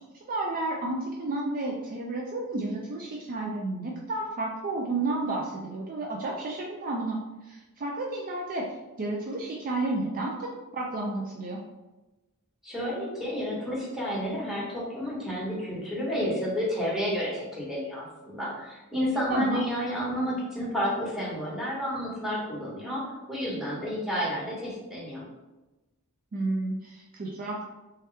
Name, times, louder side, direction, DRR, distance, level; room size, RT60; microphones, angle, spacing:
voice 1, 0.3-11.6 19.3-19.6 26.3-27.7, right 2 dB, 40° right, -2 dB, 0.4 m, -31 dB
voice 2, 12.6-23.0 23.3-25.3, equal, ahead, -7 dB, 1.3 m, -31 dB
3.4 x 2.9 x 3.3 m, 1.1 s
head